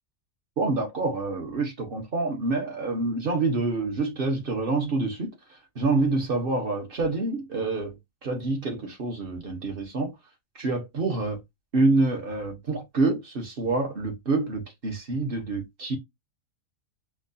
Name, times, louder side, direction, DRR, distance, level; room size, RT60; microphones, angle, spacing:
voice 1, 0.6-5.3 5.8-10.1 10.5-11.4 11.7-16.0, right 3 dB, 45° right, 0.9 m, -27 dB
4.5 x 2.3 x 2.5 m
omnidirectional pair, 1.4 m